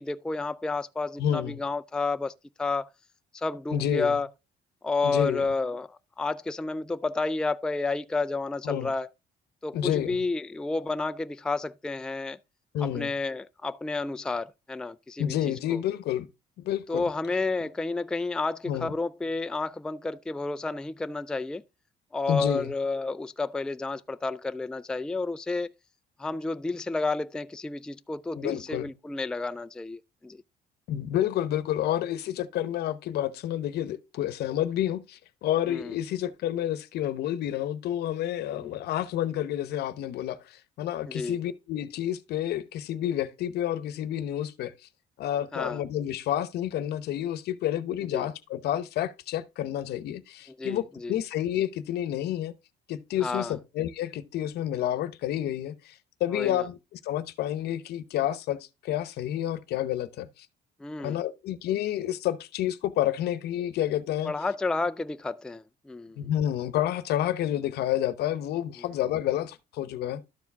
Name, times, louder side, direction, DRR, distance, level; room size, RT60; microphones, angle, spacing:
voice 1, 0.0-2.9 3.3-4.3 4.8-9.1 9.6-12.4 12.8-15.4 15.7-15.8 16.9-21.6 22.1-25.7 26.2-30.4 35.7-35.9 38.6-38.7 41.0-41.4 45.5-45.8 48.1-48.3 50.6-51.2 53.2-53.6 56.3-56.7 60.8-61.2 64.2-66.2, left 3 dB, 5° left, 0.3 m, -31 dB
voice 2, 1.2-1.6 3.7-4.1 5.0-5.5 8.6-8.9 9.7-10.3 12.7-13.1 15.2-16.3 16.6-17.1 18.7-18.9 22.3-22.7 28.4-28.9 30.9-44.7 45.2-52.5 52.9-60.5 61.0-64.3 66.2-70.2, left 11 dB, 75° left, 0.9 m, -29 dB
12.0 x 4.8 x 3.4 m
cardioid pair, 110°, 17 cm